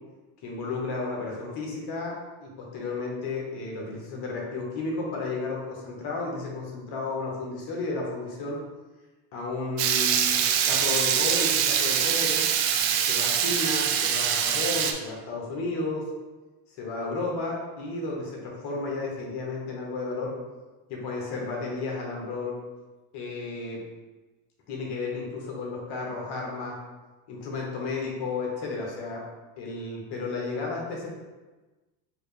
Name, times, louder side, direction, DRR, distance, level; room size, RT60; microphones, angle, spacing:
voice 1, 0.4-2.1 2.4-8.6 9.3-12.4 13.0-16.0 16.7-20.3 20.9-22.6 23.1-23.8 24.7-26.8 27.3-29.2 29.6-31.1, left 3 dB, 50° left, -2 dB, 1.4 m, -33 dB
Water tap faucet / Liquid, 9.8-14.9, right 9 dB, 65° right, 0.6 m, -24 dB
4.6 x 2.7 x 3.3 m, 1.2 s
supercardioid pair, 115°, 50 cm